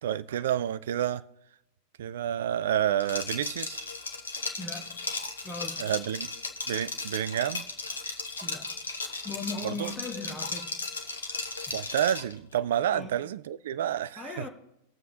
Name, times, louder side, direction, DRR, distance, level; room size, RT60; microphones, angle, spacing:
voice 1, 0.0-1.2 2.0-3.8 5.8-6.3 6.7-7.7 9.6-9.9 11.7-14.5, right 10 dB, 60° right, 0.4 m, -29 dB
Liquid, 3.0-12.3, left 3 dB, 75° left, 0.9 m, -36 dB
voice 2, 4.6-4.9 5.4-5.8 8.4-8.7 9.2-10.7 11.7-11.8 12.9-13.1 14.2-14.5, left 3 dB, 10° left, 1.3 m, -38 dB
19.5 x 7.2 x 2.8 m
figure-of-eight pair, 90°, 0 cm